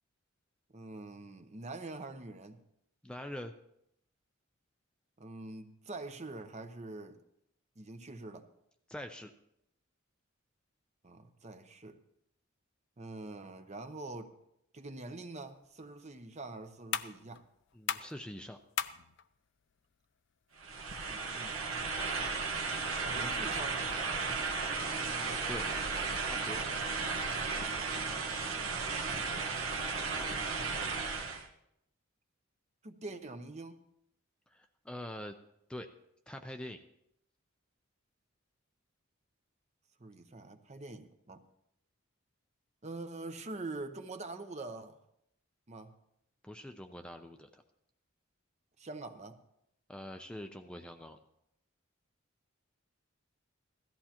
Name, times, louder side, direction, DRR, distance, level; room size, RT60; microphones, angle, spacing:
voice 1, 0.7-2.6 5.2-7.2 7.8-8.5 11.0-12.0 13.0-14.3 14.7-17.5 21.1-21.8 23.1-23.9 28.5-29.1 32.8-33.8 40.0-41.4 42.8-45.0 45.7-46.0 48.8-49.4, right 2 dB, 35° right, 0.7 m, -45 dB
voice 2, 3.0-3.5 8.9-9.3 17.7-18.6 25.0-25.7 26.2-26.6 34.5-35.4 35.7-35.9 36.3-36.8 46.4-47.6 49.9-51.2, left 1 dB, 5° left, 0.4 m, -44 dB
sound 1, 15.4-22.4, left 10 dB, 60° left, 0.4 m, -43 dB
sound 2, 20.6-31.5, right 4 dB, 90° right, 1.4 m, -35 dB
16.5 x 13.5 x 2.9 m
head